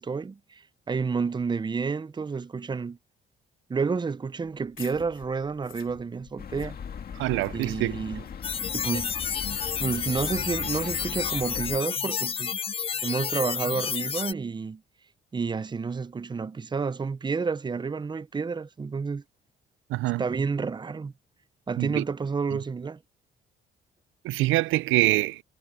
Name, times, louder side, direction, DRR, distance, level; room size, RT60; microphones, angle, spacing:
voice 1, 0.0-3.0 3.7-6.8 7.5-8.2 8.7-9.1 9.8-12.5 13.0-14.8 15.3-19.2 20.2-21.1 21.7-23.0, right 5 dB, 20° right, 0.6 m, -30 dB
sound 1, 4.5-9.8, left 12 dB, 85° left, 3.7 m, -52 dB
sound 2, 6.4-11.8, left 7 dB, 50° left, 2.0 m, -39 dB
voice 2, 7.2-8.0 19.9-20.2 21.8-22.0 24.2-25.4, right 18 dB, 90° right, 0.4 m, -25 dB
sound 3, 8.4-14.3, left 7 dB, 30° left, 0.4 m, -30 dB
cardioid pair, 90°, 20 cm